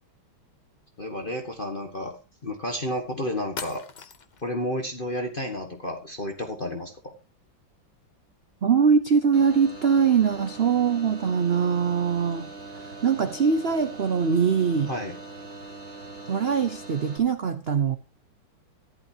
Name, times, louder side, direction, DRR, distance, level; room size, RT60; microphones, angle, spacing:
voice 1, 1.0-2.2 2.4-3.8 4.4-7.1 14.9-15.2, left 1 dB, 30° left, 1.6 m, -31 dB
sound 1, 3.6-4.5, left 5 dB, 75° left, 0.4 m, -39 dB
voice 2, 8.6-12.5 13.0-14.9 16.3-18.0, right 6 dB, 60° right, 0.6 m, -22 dB
sound 2, 9.3-17.2, right 2 dB, 35° right, 3.2 m, -41 dB
14.5 x 12.0 x 2.9 m
omnidirectional pair, 2.2 m